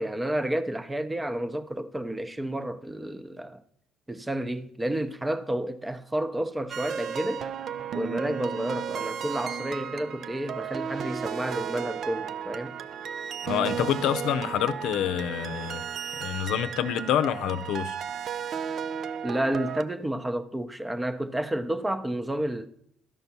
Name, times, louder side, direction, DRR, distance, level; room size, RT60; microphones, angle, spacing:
voice 1, 0.0-3.6 4.1-7.5 7.9-12.8 19.2-22.7, right 1 dB, 10° right, 0.7 m, -30 dB
sound 1, 6.7-19.8, right 7 dB, 50° right, 0.5 m, -34 dB
voice 2, 13.4-15.8 16.2-18.0, left 10 dB, 75° left, 0.6 m, -27 dB
12.5 x 5.3 x 5.9 m
cardioid pair, 95°, 0 cm